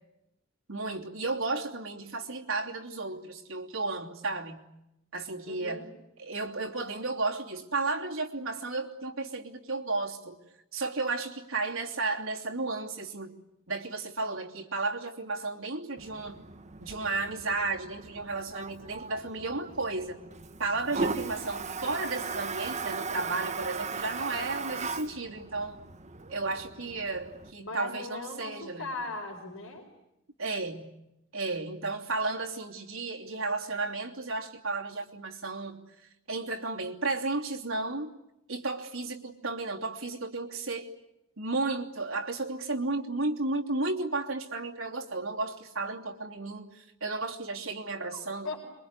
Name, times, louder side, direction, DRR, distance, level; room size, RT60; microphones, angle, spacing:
voice 1, 0.7-4.6 5.1-5.9 6.2-10.4 10.7-13.4 13.7-16.4 16.8-20.2 20.6-25.8 26.3-28.9 30.4-30.9 31.3-35.8 36.3-38.1 38.5-40.9 41.4-48.5, right 3 dB, 85° right, 1 dB, 3.0 m, -33 dB
voice 2, 5.5-5.9 27.6-29.8 48.0-48.6, left 2 dB, 70° left, 0 dB, 4.4 m, -39 dB
Toilet flush, 16.0-27.5, right 4 dB, 35° right, 1.5 m, -38 dB
27.0 x 23.0 x 9.7 m, 0.88 s
head